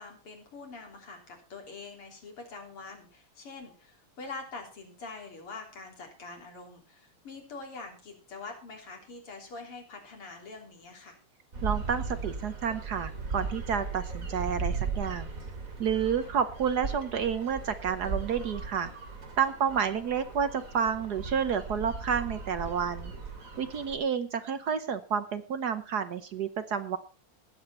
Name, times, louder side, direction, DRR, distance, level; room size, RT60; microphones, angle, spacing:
voice 1, 0.0-11.2 16.2-16.3 19.7-20.1, left 3 dB, 85° left, 2 dB, 4.3 m, -45 dB
sound 1, 11.5-24.0, right 4 dB, 40° right, 2.9 m, -37 dB
voice 2, 11.6-15.3 15.8-18.9 19.4-23.1 23.6-27.0, right 7 dB, 60° right, 11 dB, 1.2 m, -30 dB
18.5 x 8.0 x 4.3 m, 0.35 s
omnidirectional pair, 2.4 m